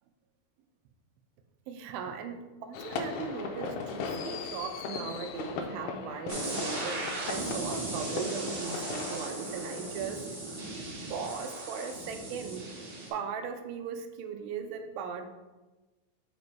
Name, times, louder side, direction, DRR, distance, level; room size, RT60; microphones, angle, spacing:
voice 1, 1.7-10.2 10.7-10.8 11.1-12.7 13.1-15.3, right 6 dB, 90° right, 7 dB, 2.4 m, -38 dB
sound 1, 2.7-9.2, left 5 dB, 80° left, 1.8 m, -38 dB
sound 2, 6.3-13.1, right 2 dB, 55° right, 2.8 m, -37 dB
5.3 x 5.1 x 4.6 m, 1.2 s
omnidirectional pair, 4.1 m